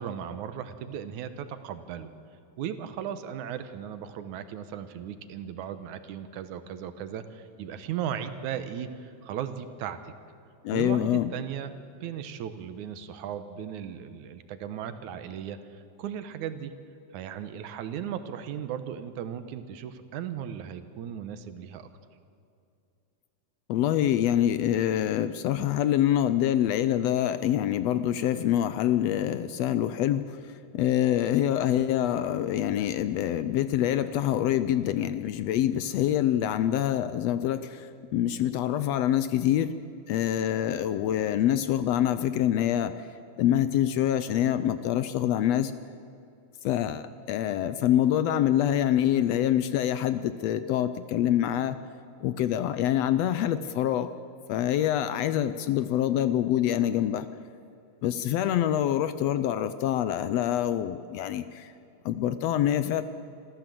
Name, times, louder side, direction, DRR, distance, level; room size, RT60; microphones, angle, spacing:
voice 1, 0.0-2.1 2.6-10.0 10.7-16.7 17.1-21.9, right 9 dB, 90° right, 10 dB, 2.5 m, -36 dB
voice 2, 10.6-11.3 23.7-39.8 40.1-43.1 43.4-45.7 46.6-51.8 52.2-54.1 54.5-57.3 58.0-61.7 62.0-63.0, left 11 dB, 75° left, 12 dB, 1.6 m, -26 dB
26.5 x 14.0 x 7.7 m, 2.5 s
omnidirectional pair, 3.4 m